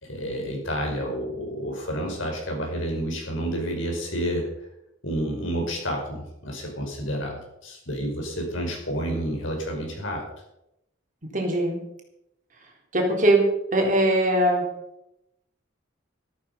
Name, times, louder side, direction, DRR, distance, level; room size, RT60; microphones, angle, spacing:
voice 1, 0.0-4.5 5.0-10.3, equal, 85° left, 1 dB, 5.4 m, -30 dB
voice 2, 11.3-11.8 12.9-13.4 13.7-14.6, right 1 dB, 40° right, 1 dB, 3.9 m, -20 dB
13.5 x 13.5 x 5.5 m, 0.83 s
head